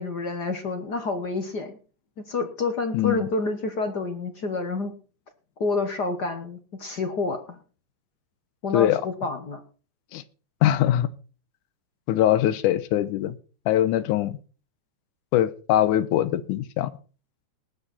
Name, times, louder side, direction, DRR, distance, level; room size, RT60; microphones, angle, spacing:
voice 1, 0.0-1.8 2.2-4.9 5.6-7.6 8.6-9.6, left 3 dB, 55° left, 7 dB, 1.1 m, -28 dB
voice 2, 2.9-3.3 8.7-9.0 10.1-10.2 10.6-11.1 12.1-13.4 13.7-14.4 15.3-16.9, left 12 dB, 85° left, 15 dB, 2.3 m, -22 dB
19.5 x 8.1 x 4.2 m, 0.38 s
omnidirectional pair, 3.5 m